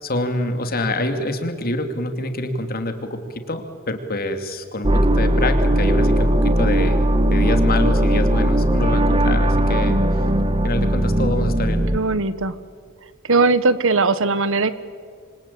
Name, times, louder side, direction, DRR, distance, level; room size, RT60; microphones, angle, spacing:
voice 1, 0.0-7.0 7.3-10.3 10.6-11.8, left 1 dB, 45° left, 7 dB, 2.7 m, -26 dB
sound 1, 4.8-12.0, right 1 dB, 25° right, 1.3 m, -18 dB
voice 2, 11.9-12.5 13.2-14.7, right 3 dB, 65° right, 14 dB, 1.3 m, -19 dB
27.0 x 25.0 x 8.6 m, 2.1 s
head